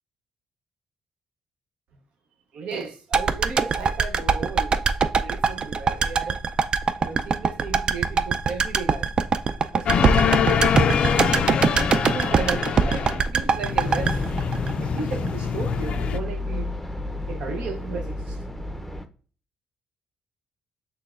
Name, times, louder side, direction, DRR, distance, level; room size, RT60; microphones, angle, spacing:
voice 1, 2.5-4.7 5.2-6.4 7.0-9.1 9.7-11.5 12.1-14.2 14.8-16.7 17.3-18.4, right 4 dB, 75° right, 0.7 m, -35 dB
sound 1, 3.1-15.3 15.6-15.7, right 5 dB, 45° right, 0.4 m, -22 dB
sound 2, 9.9-13.2 13.5-16.2, left 7 dB, 60° left, 0.3 m, -24 dB
sound 3, 13.8-19.1, left 1 dB, 5° left, 0.6 m, -32 dB
5.8 x 3.3 x 2.4 m
supercardioid pair, 70°, 2 cm